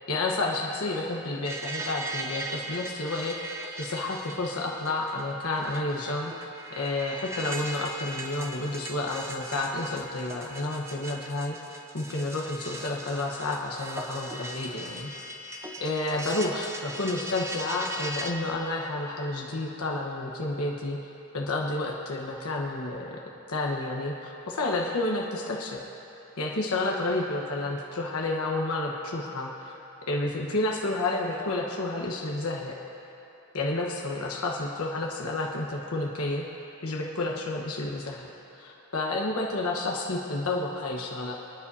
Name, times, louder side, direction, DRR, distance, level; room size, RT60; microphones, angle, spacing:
voice 1, 0.1-6.3 6.7-11.6 11.9-15.1 15.8-21.0 21.3-23.2 23.5-25.8 26.4-29.7 30.1-32.8 33.5-36.5 36.8-38.3 38.6-41.3, left 2 dB, 85° left, -1 dB, 1.2 m, -30 dB
sound 1, 1.4-18.3, right 1 dB, 10° right, 0.7 m, -39 dB
28.5 x 10.0 x 2.8 m, 3.0 s
head